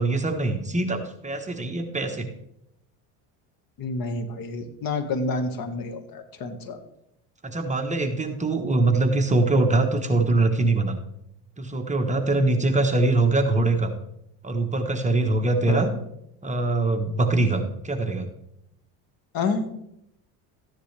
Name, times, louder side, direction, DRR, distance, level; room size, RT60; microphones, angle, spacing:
voice 1, 0.0-2.3 7.4-11.0 11.6-13.9 14.4-15.9 16.4-18.3, right 2 dB, 15° right, 4 dB, 1.1 m, -23 dB
voice 2, 3.8-6.8 15.7-15.9 19.3-19.7, left 3 dB, 55° left, 8 dB, 1.7 m, -29 dB
14.0 x 10.0 x 3.3 m, 0.78 s
cardioid pair, 125°, 43 cm